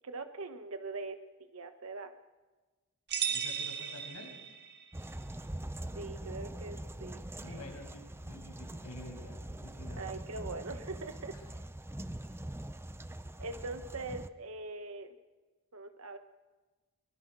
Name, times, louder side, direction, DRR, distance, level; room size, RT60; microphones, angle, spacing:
voice 1, 0.0-2.1 5.9-7.6 10.0-11.6 13.4-15.1 15.7-16.2, right 3 dB, 70° right, 8 dB, 1.3 m, -42 dB
sound 1, 3.1-4.9, right 7 dB, 50° right, 1.9 m, -36 dB
voice 2, 3.3-4.3 7.4-10.0 12.2-12.3, left 1 dB, 90° left, 2 dB, 6.8 m, -49 dB
sound 2, 4.9-14.3, right 1 dB, 10° right, 0.6 m, -43 dB
23.5 x 23.0 x 6.2 m, 1.2 s
head